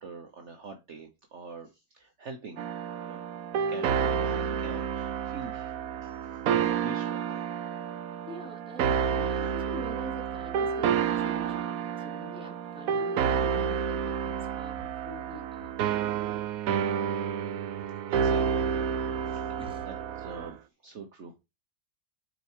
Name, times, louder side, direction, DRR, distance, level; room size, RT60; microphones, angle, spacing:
voice 1, 0.0-1.7 1.9-2.6 3.0-3.2 3.7-5.7 6.0-6.2 6.5-7.4 18.1-18.7 19.3-19.6 19.8-21.4, right 4 dB, 55° right, 1.4 m, -44 dB
sound 1, 2.6-20.5, right 7 dB, 75° right, 1.1 m, -30 dB
voice 2, 8.2-15.7 19.6-19.9, equal, 5° right, 3.1 m, -46 dB
6.8 x 4.6 x 6.4 m
omnidirectional pair, 1.5 m